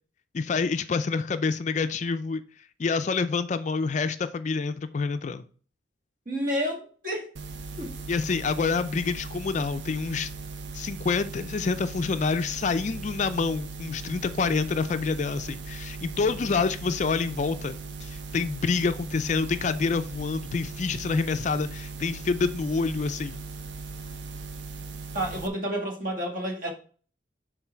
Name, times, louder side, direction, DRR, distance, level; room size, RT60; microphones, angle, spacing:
voice 1, 0.3-2.4 2.8-5.4 8.1-10.3 10.7-23.4, left 4 dB, 40° left, 0.3 m, -27 dB
voice 2, 6.3-7.3 7.8-8.0 25.1-26.7, equal, 45° right, 1.8 m, -30 dB
sound 1, 7.4-25.5, right 4 dB, 70° right, 0.7 m, -39 dB
7.1 x 3.8 x 4.4 m
head